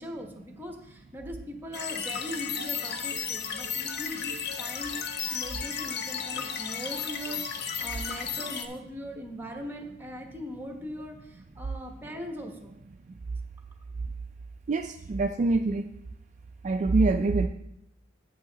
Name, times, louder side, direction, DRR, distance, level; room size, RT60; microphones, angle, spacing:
voice 1, 0.0-12.7, equal, 10° right, 3 dB, 1.1 m, -40 dB
sound 1, 1.7-8.7, left 7 dB, 55° left, 0.8 m, -34 dB
voice 2, 14.7-15.9 16.6-17.5, right 3 dB, 40° right, 6 dB, 0.3 m, -25 dB
8.2 x 8.0 x 3.9 m, 0.83 s
head